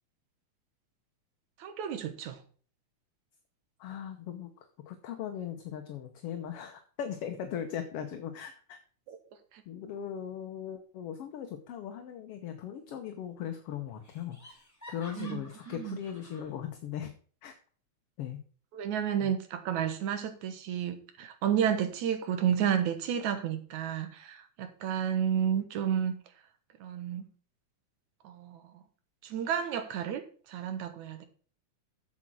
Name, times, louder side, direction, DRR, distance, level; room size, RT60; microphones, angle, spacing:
voice 1, 1.6-2.4 9.1-9.2 9.5-9.6 15.2-15.4 15.7-16.0 18.7-26.1 26.8-27.3 28.2-28.6 29.2-31.3, right 9 dB, 75° right, 2.6 m, -31 dB
voice 2, 3.8-8.8 9.7-14.6 14.9-17.1 17.4-17.6 18.2-18.4 19.2-19.3, left 9 dB, 65° left, 1.7 m, -39 dB
Laughter, 12.7-13.3 13.5-13.6 14.0-16.5, left 1 dB, 5° left, 3.8 m, -52 dB
8.1 x 7.5 x 6.1 m
omnidirectional pair, 3.4 m